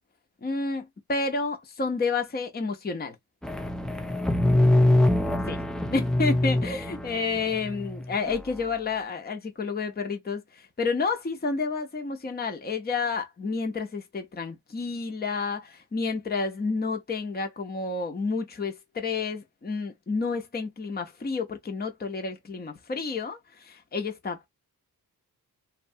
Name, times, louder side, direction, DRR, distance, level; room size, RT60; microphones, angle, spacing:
voice 1, 0.4-3.2 5.4-5.6 5.9-24.5, left 4 dB, 25° left, 0.7 m, -30 dB
sound 1, 3.4-8.4, left 1 dB, ahead, 0.3 m, -24 dB
2.8 x 2.2 x 2.7 m
cardioid pair, 95°, 38 cm